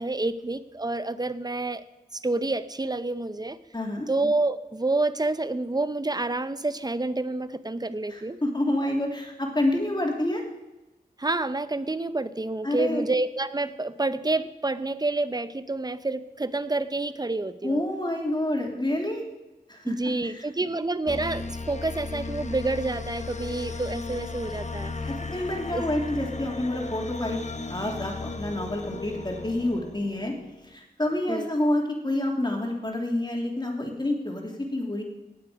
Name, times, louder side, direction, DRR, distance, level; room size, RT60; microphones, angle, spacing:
voice 1, 0.0-1.8 2.1-3.6 4.1-8.4 11.2-17.8 19.8-24.9 25.7-25.9 31.3-31.5, right 2 dB, 25° right, 14 dB, 0.7 m, -28 dB
voice 2, 3.7-4.1 8.1-10.4 12.6-13.0 17.6-19.2 19.7-20.4 25.1-27.4 27.7-30.3 30.6-35.0, left 1 dB, 25° left, 1 dB, 3.1 m, -28 dB
sound 1, 21.1-30.5, left 3 dB, 45° left, 1.1 m, -36 dB
18.5 x 7.7 x 5.2 m, 1.0 s
wide cardioid pair, 55°, 17 cm